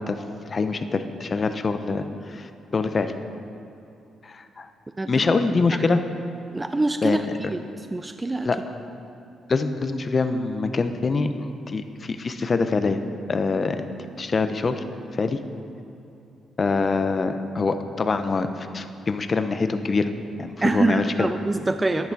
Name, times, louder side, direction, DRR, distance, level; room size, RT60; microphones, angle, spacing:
voice 1, 0.1-3.1 4.2-4.7 5.1-6.0 7.0-7.3 8.4-8.6 9.5-13.0 13.3-13.9 14.2-14.8 15.1-15.4 16.6-20.1 20.4-21.3, left 4 dB, 30° left, 9 dB, 0.6 m, -25 dB
voice 2, 6.5-7.6 7.9-8.5 20.6-22.1, right 2 dB, 15° right, 8 dB, 0.3 m, -24 dB
11.0 x 10.5 x 4.6 m, 2.8 s
cardioid pair, 135°, 0 cm